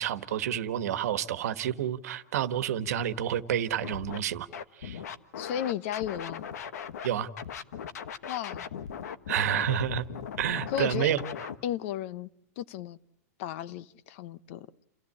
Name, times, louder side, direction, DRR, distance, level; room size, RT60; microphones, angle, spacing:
voice 1, 0.0-4.5 4.8-5.0 7.0-7.3 9.3-10.1 10.4-11.2, right 10 dB, 75° right, 1.4 m, -29 dB
Scratching (performance technique), 3.8-4.2 4.5-7.1 7.4-11.6, left 8 dB, 85° left, 1.3 m, -38 dB
voice 2, 5.4-6.4 8.3-8.7 10.7-11.1 11.6-12.3 12.6-13.0 13.4-14.7, left 11 dB, 55° left, 0.8 m, -34 dB
29.5 x 14.5 x 8.6 m
supercardioid pair, 145°, 8 cm